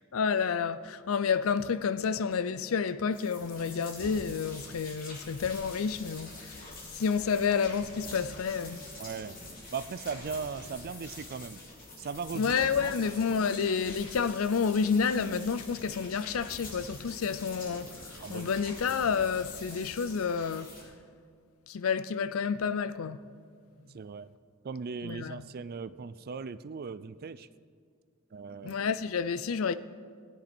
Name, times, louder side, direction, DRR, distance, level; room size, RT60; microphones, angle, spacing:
voice 1, 0.1-6.5 7.0-8.8 12.3-17.9 18.3-20.7 21.7-23.2 25.0-25.4 28.6-29.8, left 6 dB, 70° left, 0.5 m, -29 dB
sound 1, 3.1-20.8, left 2 dB, 45° left, 3.1 m, -46 dB
voice 2, 9.0-9.4 9.7-11.6 12.0-12.5 12.8-12.9 18.2-18.5 23.8-24.3 24.6-27.5 28.3-28.8, right 5 dB, 45° right, 0.4 m, -38 dB
19.0 x 10.0 x 4.4 m
head